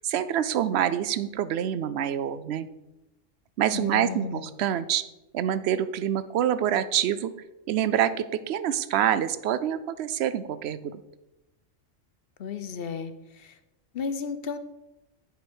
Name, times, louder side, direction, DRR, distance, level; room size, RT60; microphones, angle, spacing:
voice 1, 0.0-2.7 3.6-5.0 5.3-7.3 7.7-11.0, right 10 dB, 65° right, 14 dB, 0.8 m, -26 dB
voice 2, 3.7-4.5 12.4-13.6 13.9-14.6, left 5 dB, 60° left, 10 dB, 0.8 m, -34 dB
10.0 x 5.2 x 4.5 m, 0.94 s
omnidirectional pair, 1.3 m